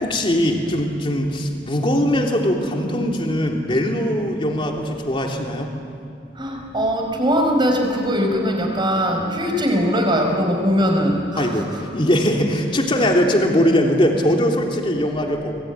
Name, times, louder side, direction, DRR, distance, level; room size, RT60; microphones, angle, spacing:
voice 1, 0.0-5.7 11.4-15.6, equal, 30° left, 1 dB, 3.1 m, -20 dB
voice 2, 6.3-11.8, equal, 25° right, 2 dB, 4.9 m, -21 dB
25.5 x 20.5 x 9.6 m, 2.5 s
head